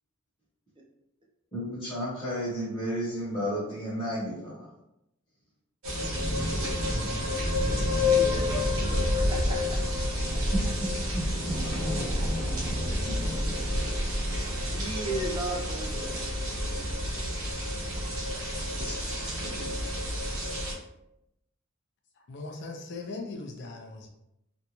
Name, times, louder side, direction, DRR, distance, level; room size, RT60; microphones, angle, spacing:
voice 1, 1.5-4.7 10.5-10.9 11.5-11.6 11.8-11.9 17.7-17.8 18.7-19.8, equal, 25° left, -9 dB, 0.9 m, -33 dB
sound 1, 5.8-20.7, left 1 dB, 85° right, 0.9 m, -29 dB
voice 2, 7.3-10.5 12.2-12.3 12.9-13.0 13.6-14.2 14.6-16.9, right 2 dB, 25° right, -2 dB, 0.5 m, -39 dB
voice 3, 22.3-24.1, left 3 dB, 55° left, 2 dB, 0.4 m, -39 dB
2.5 x 2.2 x 2.9 m, 0.84 s
head